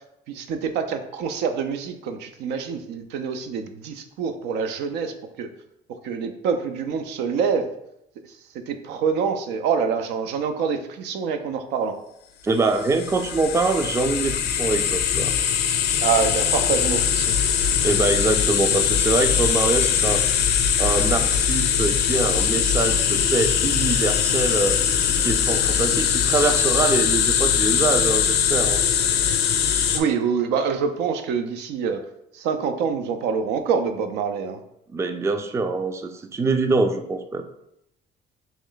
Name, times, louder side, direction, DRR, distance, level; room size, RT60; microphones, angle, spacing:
voice 1, 0.3-5.5 6.0-7.7 8.7-12.0 16.0-17.3 29.9-32.0 32.3-34.6, right 6 dB, 85° right, 8 dB, 0.4 m, -26 dB
voice 2, 12.4-15.3 17.8-20.2 20.8-24.8 25.2-28.8 34.9-37.4, right 3 dB, 15° right, 7 dB, 0.3 m, -24 dB
sound 1, 12.7-30.0, left 8 dB, 80° left, 0.5 m, -21 dB
3.1 x 3.1 x 3.8 m, 0.80 s
cardioid pair, 110°, 17 cm